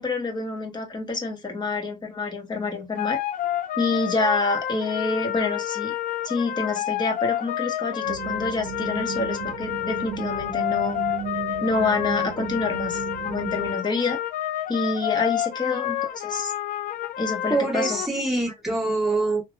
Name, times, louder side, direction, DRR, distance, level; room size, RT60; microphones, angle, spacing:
voice 1, 0.0-3.2 3.8-5.9 6.2-11.0 11.6-13.0 13.2-14.2 14.7-16.5 17.2-18.0, left 3 dB, 25° left, 1.0 m, -27 dB
sound 1, 2.9-18.1, left 12 dB, 55° left, 0.4 m, -29 dB
sound 2, 8.0-13.8, right 9 dB, 90° right, 0.5 m, -35 dB
voice 2, 17.5-19.4, right 2 dB, ahead, 1.6 m, -25 dB
3.3 x 2.2 x 2.3 m
cardioid pair, 110°, 17 cm